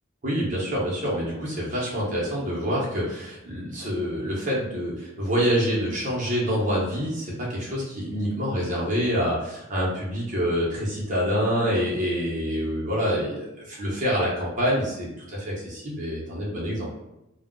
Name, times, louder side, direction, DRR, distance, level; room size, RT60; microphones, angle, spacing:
voice 1, 0.2-16.9, equal, 40° right, -5 dB, 1.0 m, -26 dB
2.4 x 2.3 x 3.7 m, 0.91 s
head